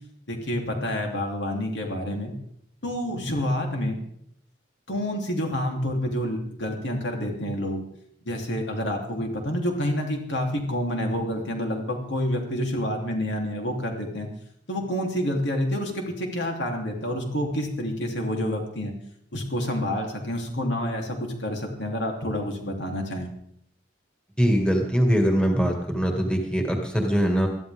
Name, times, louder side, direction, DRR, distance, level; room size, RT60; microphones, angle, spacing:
voice 1, 0.3-2.3 2.8-4.0 4.9-7.8 8.2-14.3 14.7-18.9 19.3-23.3, equal, 75° left, 1 dB, 3.3 m, -28 dB
voice 2, 24.4-27.5, equal, 5° left, 2 dB, 2.0 m, -22 dB
22.0 x 13.5 x 3.6 m, 0.70 s
head